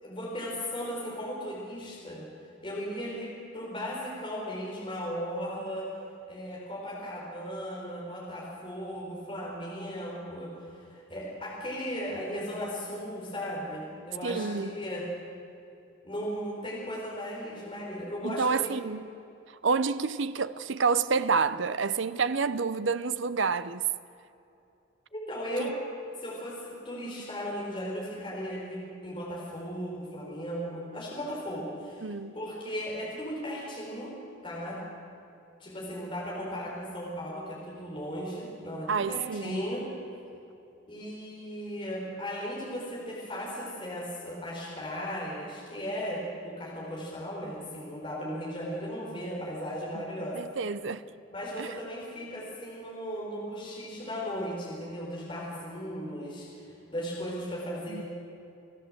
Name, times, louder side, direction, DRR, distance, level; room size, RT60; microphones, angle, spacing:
voice 1, 0.0-2.3 2.6-5.9 6.3-15.1 16.0-18.7 25.1-25.8 26.2-26.6 26.8-32.1 32.3-34.1 34.4-34.8 35.6-39.8 40.9-50.4 51.3-58.0, equal, 25° left, 5.1 m, -36 dB
voice 2, 14.2-14.7 18.2-19.2 19.5-23.8 25.6-25.8 32.0-32.4 38.9-39.6 50.3-51.0 51.6-51.7 57.9-58.0, right 5 dB, 65° right, 0.7 m, -29 dB
28.5 x 14.5 x 7.9 m
head